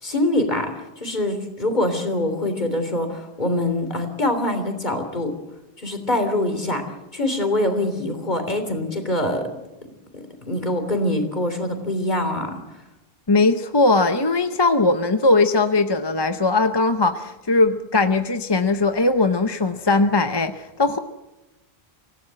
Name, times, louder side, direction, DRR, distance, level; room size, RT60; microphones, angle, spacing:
voice 1, 0.0-5.3 5.8-6.8 7.1-9.5 10.1-12.6, left 1 dB, 45° left, 6 dB, 3.5 m, -24 dB
voice 2, 13.3-21.0, left 3 dB, 25° left, 8 dB, 0.8 m, -19 dB
25.0 x 16.5 x 7.7 m, 1.0 s
omnidirectional pair, 1.1 m